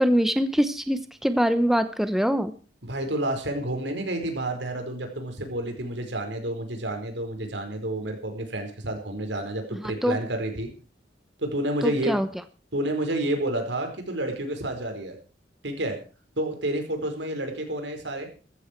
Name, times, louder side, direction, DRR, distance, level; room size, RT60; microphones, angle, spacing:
voice 1, 0.0-2.5 9.7-10.2 11.8-12.3, equal, ahead, 11 dB, 0.9 m, -23 dB
voice 2, 2.8-10.7 11.4-12.2 12.7-15.2 15.6-16.0 16.4-18.3, right 1 dB, 85° right, 5 dB, 4.7 m, -29 dB
15.0 x 14.5 x 4.6 m, 0.36 s
head